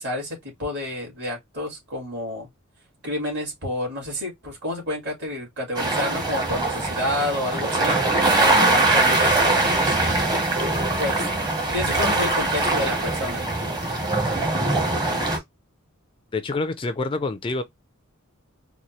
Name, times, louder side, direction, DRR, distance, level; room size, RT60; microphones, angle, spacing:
voice 1, 0.0-2.5 3.0-8.0 8.2-10.3 11.0-11.3 11.7-13.5 14.5-15.3, left 1 dB, 55° right, 2.2 m, -30 dB
sound 1, 5.7-15.4, right 2 dB, 20° right, 0.9 m, -22 dB
voice 2, 16.3-17.6, left 3 dB, 25° left, 0.3 m, -27 dB
4.1 x 2.2 x 3.0 m
head